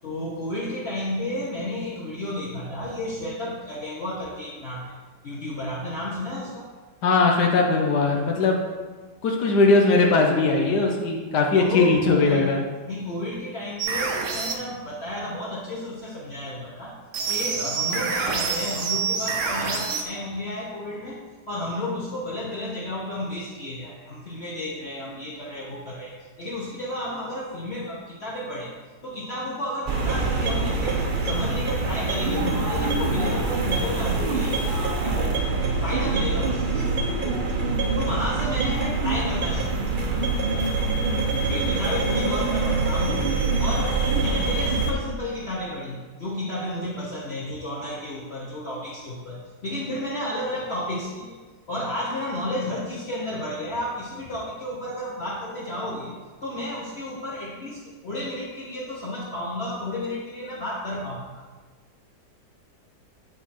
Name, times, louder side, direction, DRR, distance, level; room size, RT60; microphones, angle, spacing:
voice 1, 0.0-4.9 5.2-6.7 11.5-12.5 12.9-16.9 17.3-21.2 21.5-28.7 29.0-35.5 35.8-37.0 37.9-39.8 41.5-43.2 43.6-51.4 51.7-56.1 56.4-61.4, left 1 dB, 40° left, -7 dB, 1.4 m, -32 dB
voice 2, 7.0-8.6 9.2-12.6, left 3 dB, 80° left, 0 dB, 1.5 m, -20 dB
sound 1, 13.8-14.6 17.1-20.0, right 5 dB, 80° right, 1.5 m, -27 dB
sound 2, 29.9-44.9, right 3 dB, 40° right, 0.8 m, -25 dB
9.5 x 4.6 x 4.4 m, 1.3 s
omnidirectional pair, 1.8 m